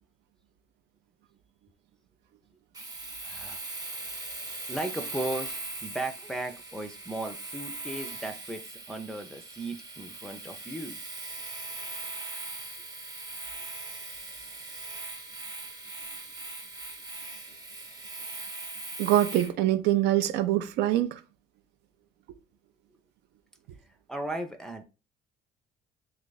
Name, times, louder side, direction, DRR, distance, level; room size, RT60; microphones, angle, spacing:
Domestic sounds home sounds, 2.7-19.6, right 2 dB, 20° right, 0.9 m, -40 dB
voice 1, 3.2-3.6 4.7-11.0 24.1-24.8, right 2 dB, 5° left, 0.4 m, -36 dB
voice 2, 19.0-21.2, right 13 dB, 85° right, 0.5 m, -24 dB
3.0 x 2.4 x 3.9 m
cardioid pair, 110°, 17 cm